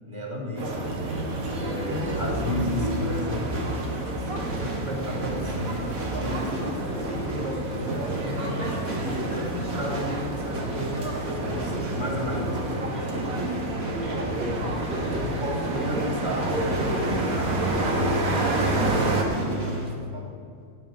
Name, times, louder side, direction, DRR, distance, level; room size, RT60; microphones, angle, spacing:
voice 1, 0.1-0.9 1.5-3.7 4.2-13.5 13.8-14.1 14.6-20.4, left 1 dB, 20° right, -2 dB, 2.9 m, -34 dB
sound 1, 0.6-19.9, right 1 dB, 60° right, 2.1 m, -35 dB
sound 2, 0.6-19.2, right 2 dB, 85° right, 2.1 m, -29 dB
9.8 x 9.2 x 9.0 m, 2.2 s
omnidirectional pair, 1.4 m